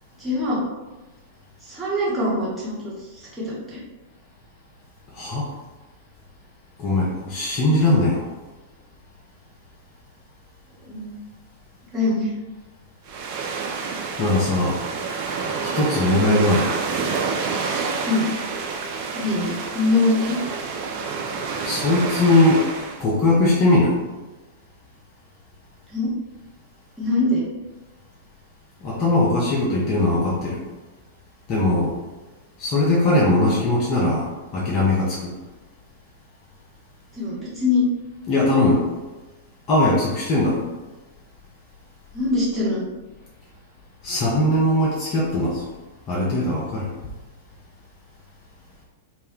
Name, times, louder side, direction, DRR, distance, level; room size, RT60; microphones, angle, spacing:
voice 1, 0.2-0.6 1.6-3.8 10.9-11.2 11.9-12.3 18.0-18.3 19.1-20.4 25.9-26.1 27.0-27.5 37.1-37.8 42.1-42.9, left 2 dB, 5° right, -9 dB, 1.0 m, -23 dB
voice 2, 5.2-5.5 6.8-8.2 14.2-14.8 15.6-16.7 21.6-22.6 23.0-23.9 28.8-30.6 31.5-31.9 32.6-34.3 34.5-35.3 38.3-38.8 39.7-40.6 44.0-45.6 46.1-46.9, left 2 dB, 35° left, -5 dB, 0.6 m, -20 dB
sound 1, 13.1-23.0, right 5 dB, 40° right, 0.4 m, -28 dB
2.1 x 2.1 x 3.6 m, 1.2 s
figure-of-eight pair, 95°, 0 cm